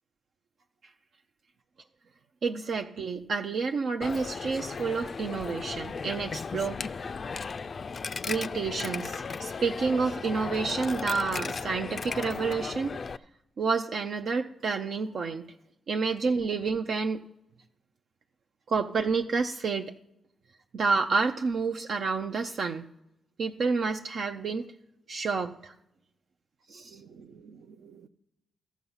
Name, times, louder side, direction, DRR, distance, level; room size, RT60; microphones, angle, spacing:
voice 1, 2.4-6.8 8.3-12.9 13.6-15.4 15.9-17.2 18.7-19.9 20.7-22.9 23.4-24.7 25.1-25.7 26.7-28.1, right 4 dB, 65° right, 3 dB, 0.5 m, -29 dB
Coin (dropping), 4.0-13.2, left 5 dB, 50° left, 0.3 m, -36 dB
13.5 x 6.0 x 5.5 m, 0.86 s
supercardioid pair, 55°, 0 cm